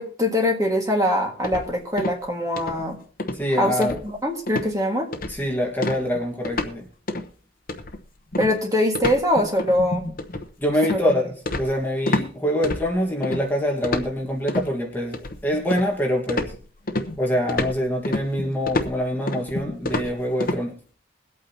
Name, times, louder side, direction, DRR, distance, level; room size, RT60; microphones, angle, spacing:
voice 1, 0.0-3.0 3.6-5.1 8.4-10.0 10.9-11.1, left 1 dB, 15° right, 1 dB, 1.8 m, -23 dB
sound 1, 1.4-2.3 2.6-2.9 3.2-3.4 3.8-4.2 4.5-4.7 5.1-5.5 5.8-6.8 7.1-7.3 7.7-12.3 12.6-13.4 13.8-14.7 15.1-16.0 16.3-20.6, left 2 dB, 45° left, 1.0 m, -28 dB
voice 2, 3.3-3.9 5.3-6.9 10.6-16.5 17.2-20.7, equal, 10° left, 0 dB, 1.5 m, -25 dB
21.5 x 8.6 x 2.9 m, 0.43 s
head